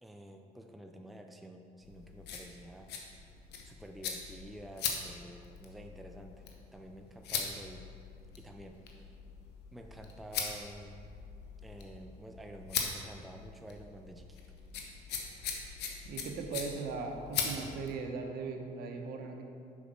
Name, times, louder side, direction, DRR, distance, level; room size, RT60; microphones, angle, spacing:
voice 1, 0.0-2.9 3.6-6.4 6.7-7.9 8.4-9.1 9.7-11.1 11.6-14.4, right 1 dB, ahead, 4 dB, 0.4 m, -50 dB
sound 1, 1.8-18.0, left 6 dB, 80° left, 0.9 m, -41 dB
voice 2, 16.0-19.4, right 4 dB, 65° right, 3 dB, 0.9 m, -39 dB
7.2 x 5.3 x 4.3 m, 2.4 s
cardioid pair, 110°, 17 cm